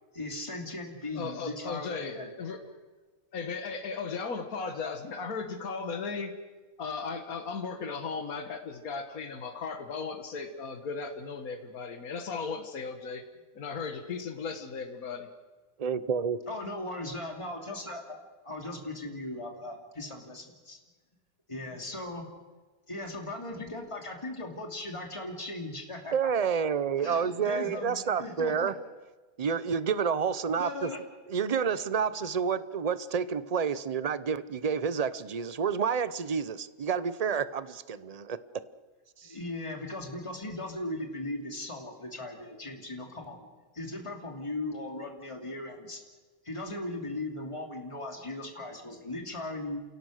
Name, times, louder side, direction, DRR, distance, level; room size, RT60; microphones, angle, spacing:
voice 1, 0.1-2.3 16.5-18.2 18.4-20.8 21.5-22.3 22.9-26.1 27.0-28.7 30.5-31.0 39.2-43.5 43.7-46.0 46.4-49.8, left 2 dB, 20° left, 2 dB, 2.8 m, -38 dB
voice 2, 1.1-2.7 3.3-6.3 6.8-13.2 13.6-15.3, left 5 dB, 75° left, 6 dB, 2.0 m, -36 dB
voice 3, 15.8-16.4 26.1-28.7 29.4-30.9 31.3-38.4 39.2-39.3, right 6 dB, 40° right, 15 dB, 0.6 m, -29 dB
29.0 x 17.0 x 6.5 m, 1.3 s
omnidirectional pair, 1.5 m